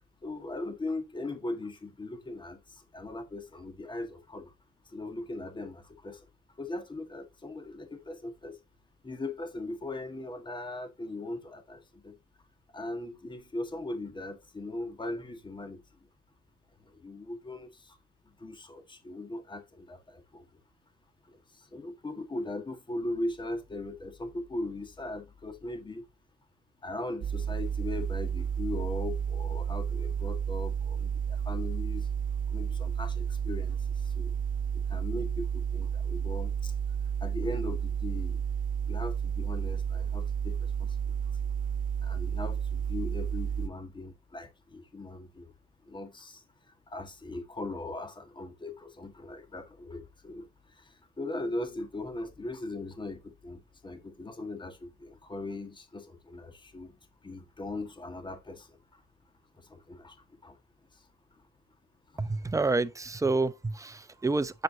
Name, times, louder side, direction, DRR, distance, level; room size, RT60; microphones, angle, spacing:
voice 1, 0.2-2.6 2.9-4.5 4.9-6.2 6.6-8.6 9.0-12.1 12.7-15.8 17.0-18.0 18.4-20.4 21.7-26.0 26.8-32.1 32.5-33.8 34.2-34.3 34.9-36.7 37.2-38.4 38.9-40.7 42.0-45.5 45.9-46.4 46.9-50.5 51.2-56.9 57.2-58.7 59.7-60.2 60.4-60.6, left 2 dB, 25° left, 1.7 m, -39 dB
sound 1, 27.2-43.7, right 8 dB, 45° right, 0.4 m, -31 dB
voice 2, 62.2-64.6, right 3 dB, 15° right, 0.7 m, -28 dB
7.7 x 7.7 x 2.8 m
cardioid pair, 90°, 20 cm